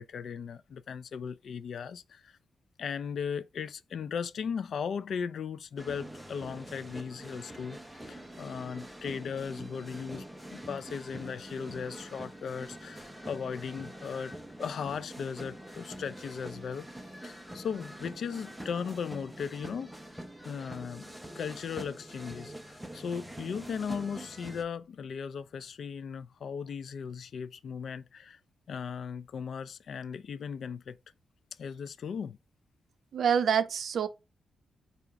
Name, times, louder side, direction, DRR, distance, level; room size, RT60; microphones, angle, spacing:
voice 1, 0.0-2.4 2.8-7.8 8.1-10.3 10.5-16.9 17.2-19.9 20.4-21.1 21.4-28.4 28.7-31.0 31.6-32.4, left 6 dB, 65° left, 0.3 m, -37 dB
sound 1, 5.8-24.6, right 1 dB, ahead, 0.6 m, -45 dB
voice 2, 33.1-34.1, right 7 dB, 65° right, 0.5 m, -26 dB
4.9 x 2.4 x 3.8 m
wide cardioid pair, 125°, 0 cm